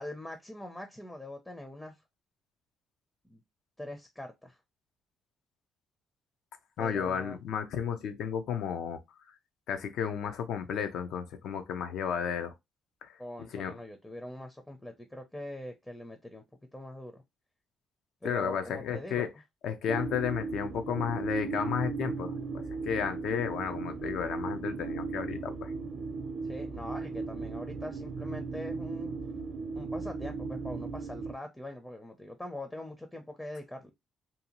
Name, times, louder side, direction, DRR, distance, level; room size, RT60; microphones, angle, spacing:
voice 1, 0.0-2.0 3.2-3.4 3.8-4.6 6.8-7.4 13.2-16.4 16.7-17.2 18.2-19.3 26.4-29.2 29.8-33.9, left 1 dB, 10° left, 0.5 m, -42 dB
voice 2, 6.8-9.0 9.7-12.5 13.0-13.1 13.5-13.7 18.2-19.3 19.6-25.7, left 8 dB, 80° left, 0.5 m, -33 dB
sound 1, 19.9-31.3, right 4 dB, 50° right, 0.6 m, -36 dB
2.7 x 2.3 x 2.8 m
cardioid pair, 90°, 0 cm